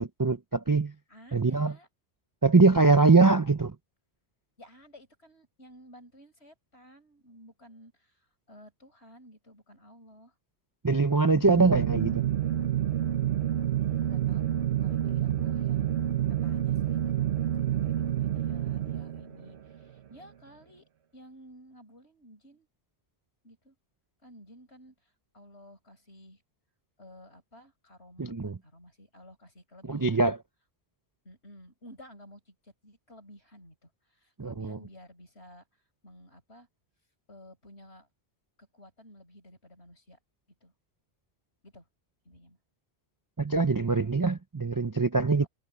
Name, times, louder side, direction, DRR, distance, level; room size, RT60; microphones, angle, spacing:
voice 1, 0.0-0.9 1.3-1.7 2.4-3.7 10.8-12.2 28.2-28.6 29.9-30.4 34.4-34.8 43.4-45.5, right 3 dB, 25° right, 0.4 m, -23 dB
voice 2, 1.1-1.9 4.6-10.4 13.8-15.9 16.4-22.7 23.4-23.8 24.2-26.4 27.0-30.3 31.2-36.7 37.3-38.1 38.6-40.2 40.6-40.7 41.6-41.9 42.3-42.6, equal, 65° left, 7.0 m, -53 dB
sound 1, 11.2-19.6, right 11 dB, 70° right, 1.2 m, -28 dB
omnidirectional pair, 1.2 m